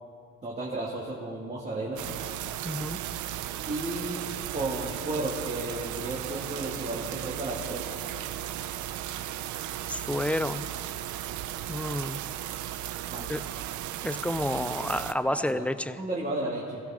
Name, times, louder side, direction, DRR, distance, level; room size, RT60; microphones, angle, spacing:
voice 1, 0.4-2.0 3.7-7.8 13.1-13.2 15.3-15.6 16.0-16.8, right 2 dB, 25° right, -5 dB, 2.5 m, -33 dB
sound 1, 2.0-15.1, right 12 dB, 75° right, 0.7 m, -36 dB
voice 2, 2.6-3.0 9.9-10.6 11.7-12.2 13.2-13.4 14.0-16.0, left 1 dB, 5° left, 13 dB, 0.4 m, -30 dB
22.5 x 15.5 x 3.8 m, 2.3 s
cardioid pair, 120°, 30 cm